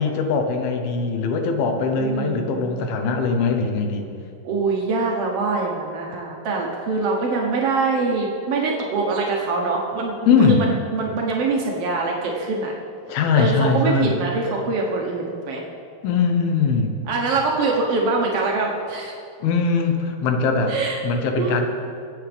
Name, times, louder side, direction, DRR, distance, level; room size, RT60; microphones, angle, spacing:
voice 1, 0.0-4.1 10.3-10.7 13.1-14.1 16.0-17.0 19.4-20.8 21.0-21.7, left 4 dB, 80° left, 4 dB, 2.9 m, -21 dB
voice 2, 2.0-2.8 4.4-12.7 13.3-15.6 17.1-19.1 20.7-21.0 21.4-21.6, right 3 dB, 85° right, -1 dB, 1.3 m, -24 dB
22.0 x 8.4 x 3.5 m, 2.5 s
omnidirectional pair, 4.5 m